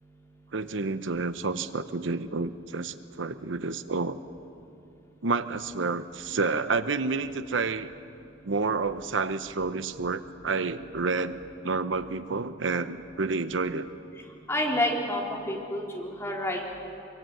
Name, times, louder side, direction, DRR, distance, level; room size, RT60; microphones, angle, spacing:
voice 1, 0.5-4.2 5.2-7.9 8.4-11.4 11.6-13.9, right 4 dB, 80° right, 12 dB, 0.9 m, -29 dB
voice 2, 14.5-16.7, left 1 dB, 15° left, -2 dB, 4.0 m, -29 dB
24.0 x 23.5 x 9.3 m, 2.6 s
head